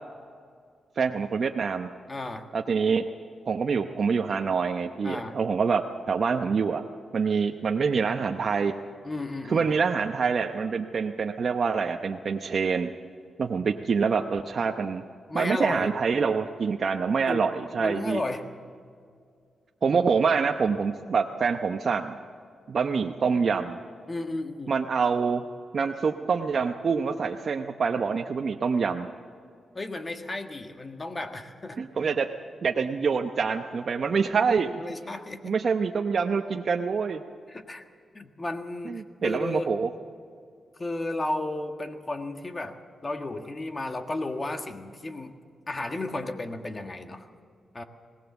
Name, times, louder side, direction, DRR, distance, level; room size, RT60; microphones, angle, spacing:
voice 1, 1.0-1.9 2.5-3.0 3.5-6.8 7.1-8.7 9.5-12.9 13.4-15.0 15.3-18.2 19.8-22.2 22.7-23.8 24.7-25.4 25.7-29.1 31.8-32.3 32.6-34.8 35.4-37.2 38.9-39.9, right 5 dB, 55° right, 4 dB, 0.8 m, -26 dB
voice 2, 2.1-2.5 5.0-5.4 9.0-9.7 15.3-15.9 17.3-17.5 17.8-18.5 24.1-24.7 29.7-31.8 34.8-35.6 37.5-37.9 38.1-39.7 40.8-45.4 45.7-47.3 47.7-47.8, left 2 dB, 25° left, 6 dB, 1.5 m, -33 dB
20.5 x 18.0 x 7.1 m, 2.2 s
cardioid pair, 90°, 0 cm